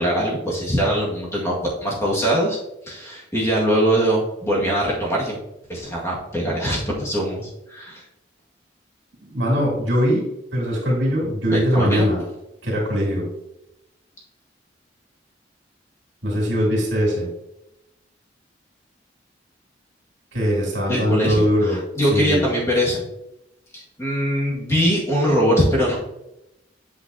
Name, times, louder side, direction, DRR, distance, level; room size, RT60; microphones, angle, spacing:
voice 1, 0.0-2.6 2.8-5.4 5.7-8.0 11.5-12.1 20.9-23.0 23.7-26.0, equal, 15° left, -5 dB, 1.9 m, -22 dB
voice 2, 9.2-10.2 10.5-12.2 12.6-13.2 16.2-17.3 20.3-21.8 22.1-22.4, equal, 85° right, -2 dB, 2.9 m, -21 dB
8.5 x 5.7 x 2.8 m, 0.87 s
head